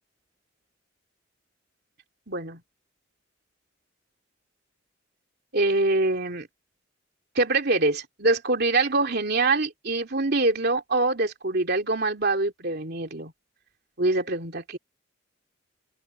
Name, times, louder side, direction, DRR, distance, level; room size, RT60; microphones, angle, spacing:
voice 1, 2.3-2.6 5.5-6.5 7.3-13.3 14.0-14.8, right 2 dB, 55° right, 3.0 m, -24 dB
open air
head